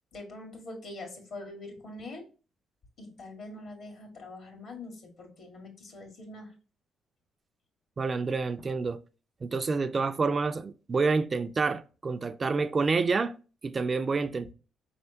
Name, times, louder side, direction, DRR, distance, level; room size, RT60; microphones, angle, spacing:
voice 1, 0.1-2.2 3.0-6.5, left 2 dB, 60° left, 1.7 m, -44 dB
voice 2, 8.0-9.0 9.4-13.3 13.6-14.5, right 4 dB, 35° right, 0.3 m, -28 dB
4.9 x 3.3 x 2.7 m
cardioid pair, 90°, 0 cm